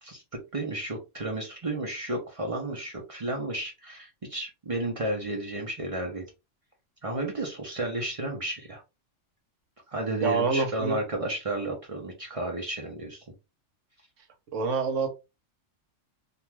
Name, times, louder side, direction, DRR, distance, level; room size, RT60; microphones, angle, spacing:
voice 1, 0.5-6.3 7.0-8.8 9.9-13.2, right 2 dB, 40° right, 1 dB, 0.5 m, -32 dB
voice 2, 10.2-11.0 14.5-15.1, right 4 dB, 70° right, 5 dB, 1.1 m, -26 dB
2.5 x 2.3 x 3.1 m, 0.26 s
omnidirectional pair, 1.3 m